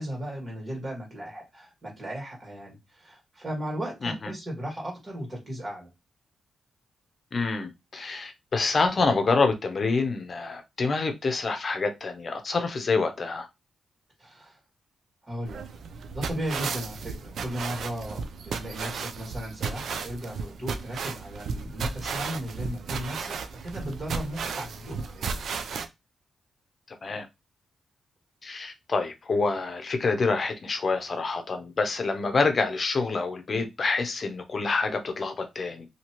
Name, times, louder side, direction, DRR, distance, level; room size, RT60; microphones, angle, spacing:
voice 1, 0.0-5.9 14.2-14.6 15.2-15.6 16.1-25.3, equal, 30° right, 2.1 m, -36 dB
voice 2, 7.3-13.5 27.0-27.3 28.4-35.9, left 4 dB, 45° left, 0.7 m, -27 dB
sound 1, 15.5-25.9, right 5 dB, 75° right, 0.5 m, -34 dB
2.8 x 2.8 x 2.9 m
cardioid pair, 85°, 0 cm